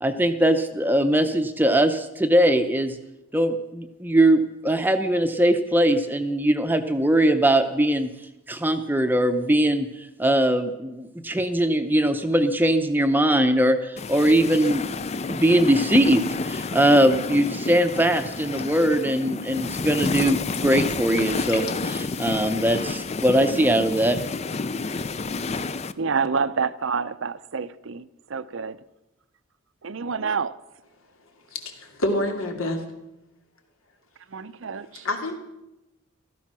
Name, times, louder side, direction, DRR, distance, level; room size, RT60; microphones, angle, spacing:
voice 1, 0.0-3.0 3.3-8.1 8.5-14.9 15.3-24.2, right 1 dB, 10° right, 0.7 m, -21 dB
sound 1, 14.0-25.9, left 3 dB, 30° left, 0.4 m, -30 dB
sound 2, 20.0-20.7 21.0-22.0, left 6 dB, 50° left, 1.8 m, -37 dB
voice 2, 26.0-28.8 29.8-30.6 34.3-35.1, right 5 dB, 65° right, 0.6 m, -28 dB
voice 3, 31.5-32.8 35.0-35.4, left 1 dB, 85° left, 2.6 m, -27 dB
16.0 x 13.5 x 6.1 m
head